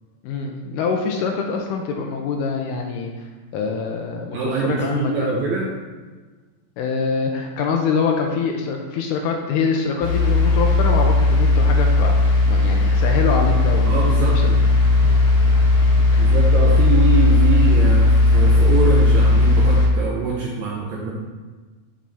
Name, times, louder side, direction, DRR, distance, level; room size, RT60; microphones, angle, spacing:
voice 1, 0.2-3.3 3.5-5.4 6.8-13.9 15.0-16.4 16.7-16.9, left 5 dB, 85° left, 2 dB, 1.9 m, -25 dB
voice 2, 4.3-5.7 13.8-14.6 16.1-21.1, right 3 dB, 75° right, -4 dB, 1.7 m, -24 dB
sound 1, 10.0-19.9, left 2 dB, 60° left, 3.4 m, -16 dB
7.5 x 5.3 x 3.5 m, 1.4 s
omnidirectional pair, 4.2 m